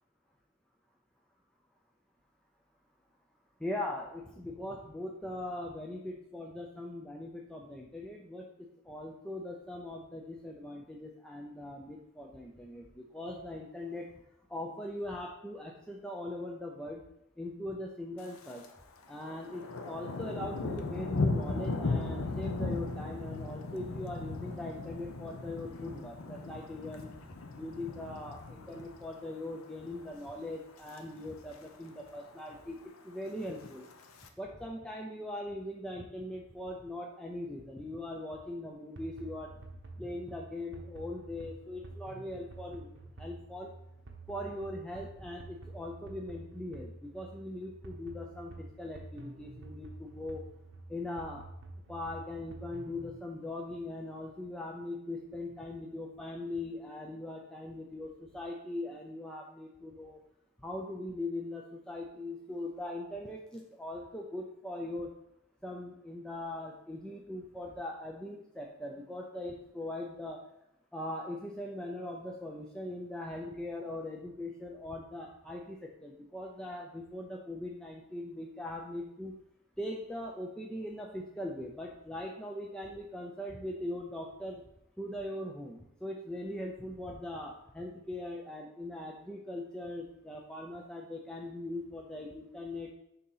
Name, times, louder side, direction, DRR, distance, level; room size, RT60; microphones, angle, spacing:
voice 1, 3.6-8.4 8.9-14.1 14.5-17.0 17.4-18.7 19.1-27.1 27.6-32.8 33.0-33.9 34.4-39.5 40.0-43.7 44.3-50.5 50.9-51.4 51.9-60.2 60.6-65.1 65.6-70.4 70.9-79.3 79.8-84.6 85.0-92.9, left 1 dB, 5° left, -1 dB, 0.4 m, -40 dB
Thunder, 18.2-18.7 19.0-29.4 29.7-30.1 30.5-31.0 31.3-31.4 31.5-31.6 32.0-32.6 33.3-34.3, left 3 dB, 85° left, 0.7 m, -37 dB
sound 1, 38.9-53.2, right 2 dB, 60° right, 0.9 m, -49 dB
6.5 x 2.8 x 5.5 m, 0.83 s
head